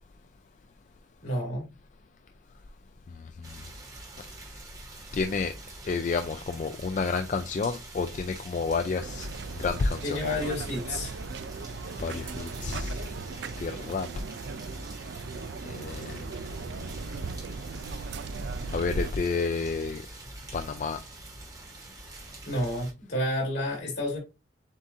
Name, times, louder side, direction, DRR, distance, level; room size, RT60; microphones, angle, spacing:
voice 1, 1.2-1.7 10.0-11.2 22.5-24.2, left 1 dB, 65° left, 2.6 m, -30 dB
sound 1, 3.4-22.9, right 2 dB, 20° right, 1.1 m, -45 dB
voice 2, 5.1-5.5 5.8-9.3 9.6-10.2 12.0-13.0 13.6-14.1 15.6-16.2 18.7-20.0 20.5-21.0, left 4 dB, 40° left, 0.3 m, -30 dB
sound 2, 9.0-19.1, right 4 dB, 70° right, 0.4 m, -38 dB
7.2 x 2.5 x 2.7 m
head